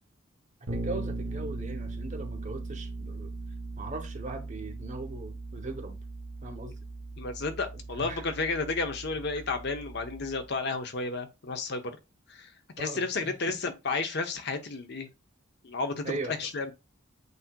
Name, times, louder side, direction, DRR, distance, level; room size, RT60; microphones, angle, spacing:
voice 1, 0.7-3.3 3.8-6.0 6.4-6.8 8.0-8.3 12.8-13.5 16.0-16.4, right 2 dB, 40° right, 0.8 m, -39 dB
Bass guitar, 0.7-10.5, right 3 dB, 70° right, 0.8 m, -39 dB
voice 2, 7.2-11.9 12.3-12.5 12.8-15.1 15.6-16.7, left 3 dB, 60° left, 0.8 m, -32 dB
8.1 x 2.8 x 2.2 m
head